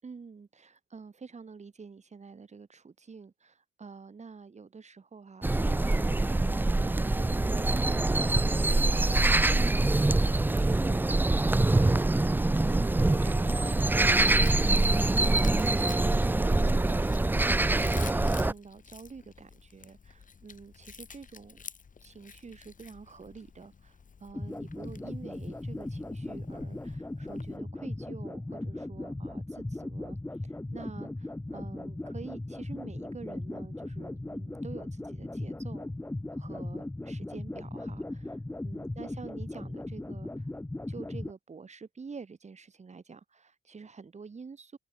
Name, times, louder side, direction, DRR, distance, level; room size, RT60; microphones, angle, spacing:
voice 1, 0.0-6.2 6.5-16.2 16.5-21.6 22.0-30.2 30.4-35.9 36.3-40.5 40.9-44.8, right 5 dB, 35° right, 6.1 m, -48 dB
sound 1, 5.4-18.5, right 2 dB, 10° right, 0.5 m, -24 dB
Chewing mastication, 13.5-27.6, left 5 dB, 40° left, 7.8 m, -50 dB
sound 2, 24.3-41.3, left 2 dB, 10° left, 1.7 m, -38 dB
cardioid pair, 115°, 20 cm